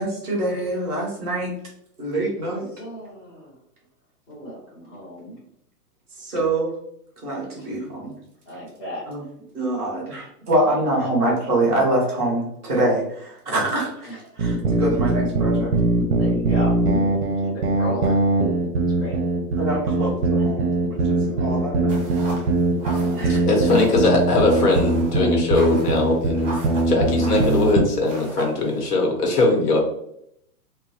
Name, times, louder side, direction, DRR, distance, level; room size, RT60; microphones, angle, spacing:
voice 1, 0.0-1.5 2.0-2.6 6.2-6.7 7.2-8.1 9.1-9.2 9.5-14.1 14.4-15.7 19.6-22.1 23.1-23.5, right 1 dB, 10° left, -4 dB, 0.5 m, -25 dB
voice 2, 2.4-3.6 4.3-5.4 8.5-9.0 10.6-11.0 14.0-14.3 16.2-16.8 17.4-18.2 18.8-19.2 21.2-21.5 23.0-23.5, equal, 30° left, -7 dB, 0.8 m, -36 dB
sound 1, 14.4-27.9, right 2 dB, 45° right, 0.5 m, -21 dB
sound 2, 21.9-29.1, right 2 dB, 20° right, 0.8 m, -38 dB
voice 3, 23.3-26.5 26.9-29.8, left 2 dB, 70° left, 1 dB, 1.1 m, -20 dB
3.1 x 2.2 x 2.7 m, 0.75 s
hypercardioid pair, 160°, 48 cm